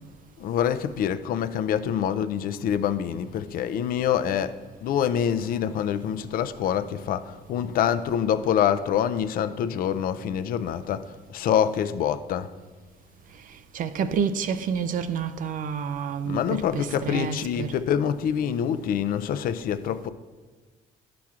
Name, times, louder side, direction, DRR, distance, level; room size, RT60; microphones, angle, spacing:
voice 1, 0.4-12.5 16.3-20.1, left 9 dB, 60° left, 0.4 m, -26 dB
voice 2, 13.7-17.7, right 6 dB, 55° right, 0.4 m, -29 dB
11.5 x 5.8 x 2.4 m
cardioid pair, 110°, 17 cm